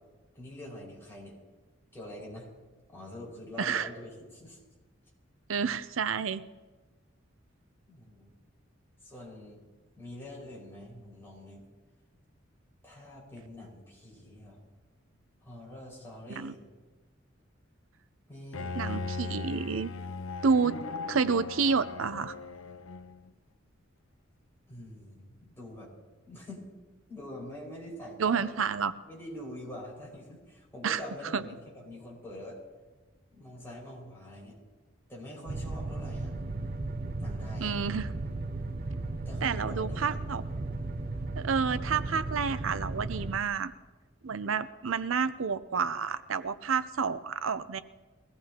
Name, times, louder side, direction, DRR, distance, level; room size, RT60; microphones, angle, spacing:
voice 1, 0.3-1.4 1.9-2.5 2.9-4.6 7.9-8.3 9.0-9.6 10.0-11.6 12.8-14.6 15.4-16.6 18.3-19.2 24.7-25.9 26.2-26.7 27.1-28.5 29.1-32.6 33.3-34.6 35.1-36.3 37.2-37.8 39.2-40.2, left 1 dB, 10° left, -5 dB, 5.5 m, -45 dB
voice 2, 3.6-3.9 5.5-6.4 16.3-16.5 18.8-19.9 20.4-20.8 21.1-22.4 28.2-28.9 30.8-31.0 31.3-31.4 37.6-38.1 39.4-40.4 41.3-43.7 44.2-47.8, right 5 dB, 90° right, 13 dB, 0.6 m, -29 dB
Bowed string instrument, 18.5-23.3, left 4 dB, 90° left, 0.6 m, -38 dB
sound 1, 35.5-43.4, right 2 dB, 45° right, 0.7 m, -35 dB
22.5 x 17.0 x 2.9 m, 1.3 s
head